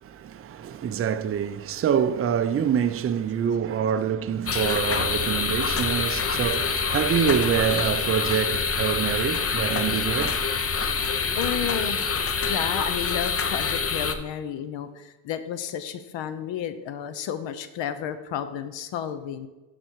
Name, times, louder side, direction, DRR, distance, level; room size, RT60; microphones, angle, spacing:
voice 1, 0.0-11.1, right 8 dB, 30° right, 0.4 m, -26 dB
sound 1, 4.5-14.1, left 5 dB, 30° left, 0.7 m, -26 dB
voice 2, 11.3-19.5, left 9 dB, 80° left, 0.9 m, -32 dB
13.0 x 4.3 x 4.6 m
cardioid pair, 105°, 45 cm